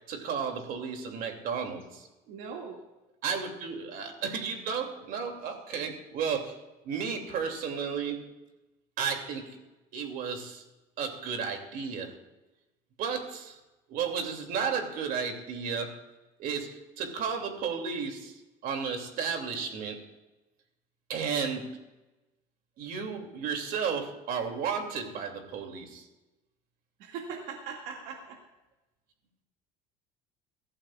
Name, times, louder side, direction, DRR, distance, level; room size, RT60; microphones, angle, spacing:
voice 1, 0.1-2.1 3.2-6.6 6.8-8.3 9.0-9.6 9.9-10.6 11.0-12.2 13.0-13.6 13.9-16.0 16.4-20.0 21.1-21.7 22.8-26.1, right 6 dB, 55° right, 4 dB, 2.6 m, -33 dB
voice 2, 2.3-2.8 27.0-28.4, right 5 dB, 80° right, 0 dB, 2.2 m, -40 dB
23.5 x 14.5 x 2.4 m, 1.1 s
cardioid pair, 140°, 17 cm